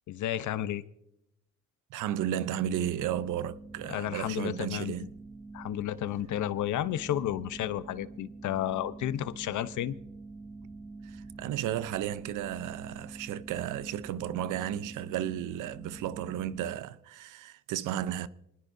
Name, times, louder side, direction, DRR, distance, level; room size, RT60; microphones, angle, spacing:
voice 1, 0.1-0.8 3.9-5.1 5.5-10.0, left 12 dB, 75° left, 0.9 m, -32 dB
voice 2, 1.9-5.1 11.0-18.3, right 11 dB, 90° right, 0.7 m, -33 dB
sound 1, 2.6-16.7, right 3 dB, 5° right, 0.8 m, -46 dB
26.5 x 20.0 x 2.7 m
cardioid pair, 90°, 30 cm